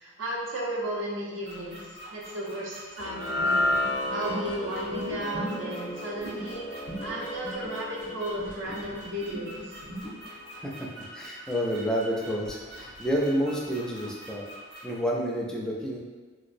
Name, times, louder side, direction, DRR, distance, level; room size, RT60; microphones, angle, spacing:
voice 1, 0.0-1.8 2.1-3.6 4.1-9.8, right 1 dB, 85° right, -4 dB, 0.7 m, -34 dB
sound 1, 1.4-15.0, right 1 dB, 65° right, 1.1 m, -45 dB
sound 2, 3.0-9.4, left 1 dB, 75° left, 0.4 m, -32 dB
sound 3, 3.3-10.1, right 1 dB, 50° right, 0.8 m, -39 dB
voice 2, 11.1-14.4 14.8-16.0, equal, 5° left, -3 dB, 0.3 m, -29 dB
3.2 x 2.9 x 2.5 m, 1.3 s
head